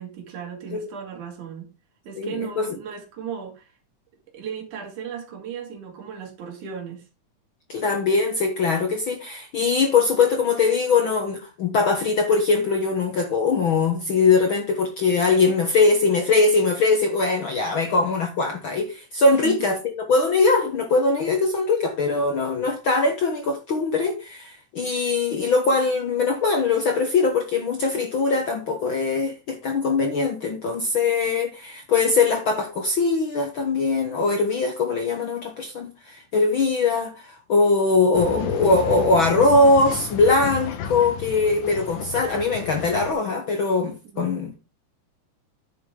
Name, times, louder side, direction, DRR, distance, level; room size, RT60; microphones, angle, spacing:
voice 1, 0.0-1.7 2.0-3.7 4.3-7.0 19.3-19.7 44.1-44.5, right 7 dB, 75° right, 3.5 m, -35 dB
voice 2, 2.2-2.7 7.7-44.6, left 3 dB, 60° left, 1.3 m, -21 dB
Male speech man speaking / Chatter / Rattle, 38.1-43.1, left 7 dB, 80° left, 2.7 m, -32 dB
10.0 x 6.5 x 3.7 m
omnidirectional pair, 3.6 m